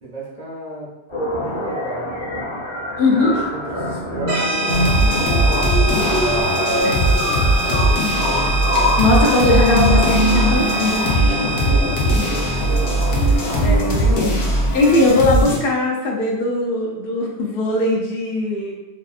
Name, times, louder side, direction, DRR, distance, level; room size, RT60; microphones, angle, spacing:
voice 1, 0.0-2.3 3.1-6.0 8.0-8.2, right 1 dB, 50° right, -4 dB, 0.5 m, -36 dB
sound 1, 1.1-15.1, equal, 30° left, 0.7 m, -24 dB
voice 2, 3.0-3.4 6.8-7.1 9.0-11.3 13.6-14.5 14.7-18.7, left 2 dB, 60° left, -1 dB, 0.6 m, -19 dB
sound 2, 4.3-13.7, right 2 dB, 90° right, 1.0 m, -25 dB
sound 3, 4.7-15.6, right 1 dB, 85° left, 0.9 m, -20 dB
2.7 x 2.4 x 2.4 m, 1.0 s
omnidirectional pair, 1.2 m